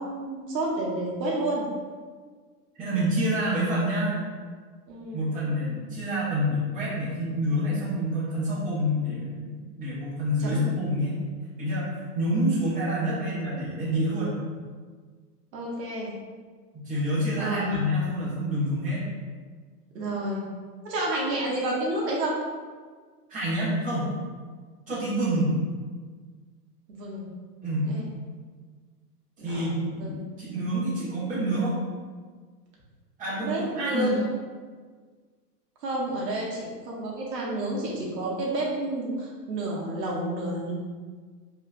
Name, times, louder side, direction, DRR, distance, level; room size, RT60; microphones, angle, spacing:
voice 1, 0.0-1.7 4.9-5.3 10.4-10.6 15.5-16.1 17.4-17.8 19.9-20.4 20.8-22.4 25.3-25.5 26.9-27.3 27.8-28.1 29.4-30.2 33.4-34.3 35.8-40.7, right 1 dB, 80° right, -3 dB, 1.0 m, -30 dB
voice 2, 2.7-4.1 5.1-11.1 11.6-14.4 16.7-19.0 23.3-24.1 24.9-25.6 27.6-27.9 29.4-31.7 33.2-34.1, equal, 15° right, -10 dB, 1.3 m, -27 dB
3.2 x 2.9 x 2.4 m, 1.5 s
hypercardioid pair, 140°, 49 cm